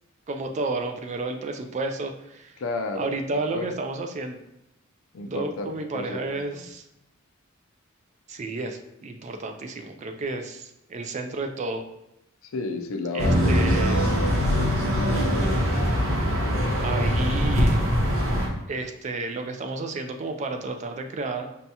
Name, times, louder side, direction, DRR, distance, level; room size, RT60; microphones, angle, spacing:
voice 1, 0.3-2.6 3.0-4.4 5.3-6.8 8.3-11.8 13.1-14.1 16.8-17.8 18.7-21.5, right 3 dB, 35° right, 5 dB, 0.3 m, -31 dB
voice 2, 2.6-3.1 3.4-3.7 5.1-6.6 12.4-13.6, left 3 dB, 75° left, 5 dB, 0.4 m, -32 dB
sound 1, 13.2-18.5, equal, 80° right, 1.1 m, -22 dB
5.3 x 2.3 x 2.7 m, 0.87 s
head